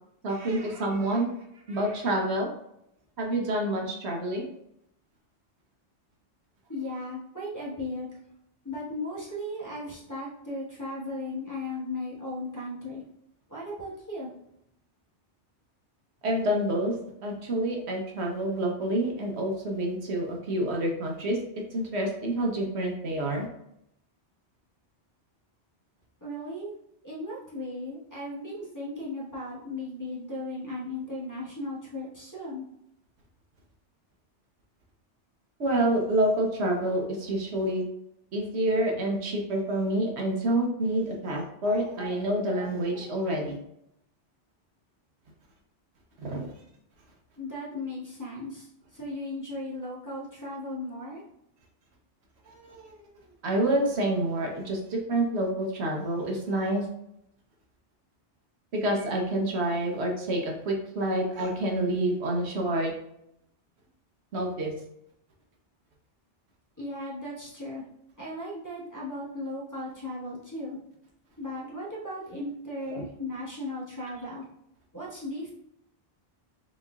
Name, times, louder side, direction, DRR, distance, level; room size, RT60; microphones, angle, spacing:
voice 1, 0.2-1.3 1.7-2.5 3.2-4.5 16.2-16.9 17.2-21.4 21.7-23.5 35.6-37.8 38.3-43.6 46.2-46.5 52.5-52.9 53.4-56.8 58.7-62.9 64.3-64.7 72.9-73.0, right 1 dB, 70° right, 0 dB, 1.1 m, -28 dB
voice 2, 6.7-8.2 8.6-13.0 13.5-14.3 26.2-26.7 27.0-32.7 47.4-51.2 66.8-67.8 68.2-70.8 71.4-74.4 74.9-75.5, left 1 dB, 15° left, -8 dB, 1.1 m, -36 dB
4.1 x 4.1 x 2.3 m, 0.76 s
omnidirectional pair, 1.2 m